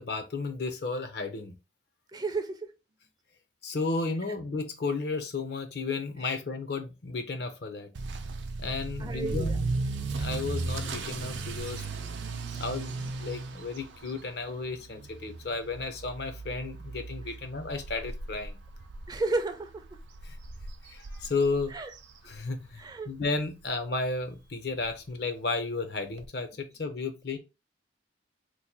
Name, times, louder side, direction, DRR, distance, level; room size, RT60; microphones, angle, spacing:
voice 1, 0.0-1.5 3.6-7.9 8.6-9.8 10.2-11.8 12.5-18.6 20.2-20.4 20.8-21.8 22.2-27.4, left 3 dB, 60° left, 0.6 m, -33 dB
voice 2, 2.1-2.7 9.0-9.6 19.1-19.8 21.7-21.9 22.8-23.1, right 3 dB, 20° right, 0.4 m, -32 dB
Motor vehicle (road) / Accelerating revving vroom, 8.0-22.8 23.1-23.5 24.0-24.1 24.4-24.5 24.8-24.9 26.2-26.3, right 3 dB, 80° right, 0.5 m, -37 dB
3.0 x 2.1 x 4.2 m
head